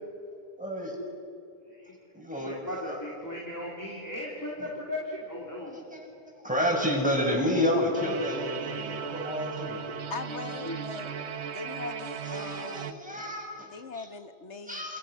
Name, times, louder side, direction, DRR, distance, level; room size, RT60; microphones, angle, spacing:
voice 1, 0.6-1.0 2.1-3.0 4.6-4.7 5.7-6.1 6.4-9.8 12.2-14.1 14.7-15.0, equal, 5° right, -1 dB, 7.1 m, -30 dB
voice 2, 2.4-5.8 9.7-11.2, left 1 dB, 15° left, -3 dB, 3.6 m, -38 dB
sound 1, 7.9-12.9, right 7 dB, 70° right, 1.4 m, -37 dB
voice 3, 10.1-11.1 11.5-12.9 13.7-14.8, left 4 dB, 80° left, 9 dB, 1.7 m, -40 dB
29.0 x 28.5 x 6.5 m, 2.6 s
omnidirectional pair, 1.2 m